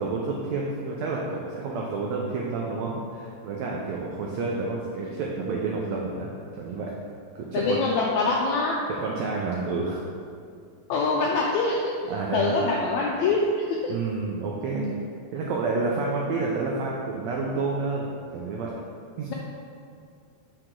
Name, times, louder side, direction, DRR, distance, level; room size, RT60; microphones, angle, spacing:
voice 1, 0.0-6.9 7.4-7.8 8.9-10.0 12.1-12.6 13.9-14.9 15.3-18.7 19.2-19.3, right 3 dB, 90° right, -2 dB, 1.5 m, -29 dB
voice 2, 7.5-8.8 10.9-13.9, left 3 dB, 90° left, -2 dB, 1.6 m, -24 dB
7.5 x 4.8 x 3.7 m, 2.3 s
omnidirectional pair, 3.8 m